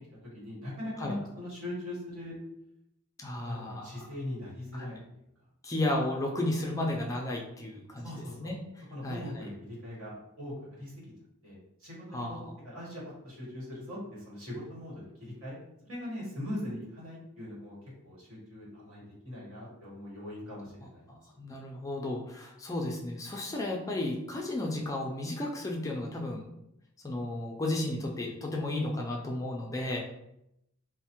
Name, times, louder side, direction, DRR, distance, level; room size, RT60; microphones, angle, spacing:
voice 1, 0.3-2.3 3.4-5.0 8.0-8.5 8.9-11.0 11.4-12.4 12.6-15.6 15.8-17.8 18.0-21.1 21.4-21.5, left 1 dB, 80° right, -5 dB, 1.2 m, -41 dB
voice 2, 3.2-3.9 4.7-5.0 5.6-8.1 8.4-8.6 9.0-9.2 12.1-12.3 21.1-26.5 27.0-30.0, left 1 dB, 15° left, 0 dB, 0.3 m, -33 dB
3.1 x 2.1 x 2.9 m, 0.82 s
head